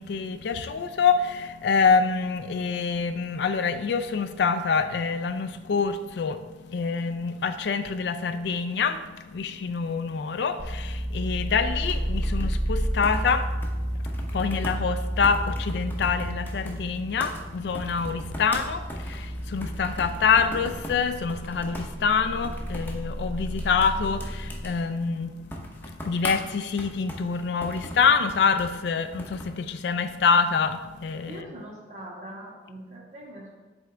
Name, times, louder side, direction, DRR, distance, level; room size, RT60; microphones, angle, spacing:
voice 1, 0.0-6.4 6.7-9.0 9.3-13.5 14.3-25.3 26.0-31.4, left 5 dB, 70° left, 10 dB, 0.4 m, -26 dB
sound 1, 10.6-24.6, equal, 5° right, 0.3 m, -32 dB
sound 2, 11.8-29.6, equal, 10° left, 0.7 m, -40 dB
voice 2, 31.2-33.5, right 1 dB, 40° right, -3 dB, 1.5 m, -42 dB
7.9 x 3.6 x 3.3 m, 1.3 s
head